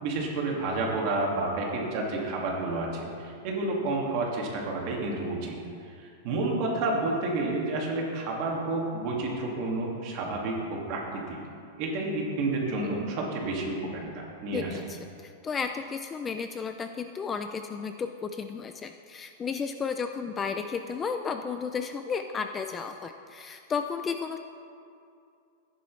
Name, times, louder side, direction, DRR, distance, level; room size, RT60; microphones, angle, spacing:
voice 1, 0.0-5.6 5.9-11.4 11.8-14.7, right 2 dB, 40° right, -1 dB, 2.0 m, -30 dB
voice 2, 14.5-24.4, left 5 dB, 15° left, 7 dB, 0.3 m, -33 dB
14.0 x 10.5 x 3.2 m, 2.5 s
supercardioid pair, 170°, 0 cm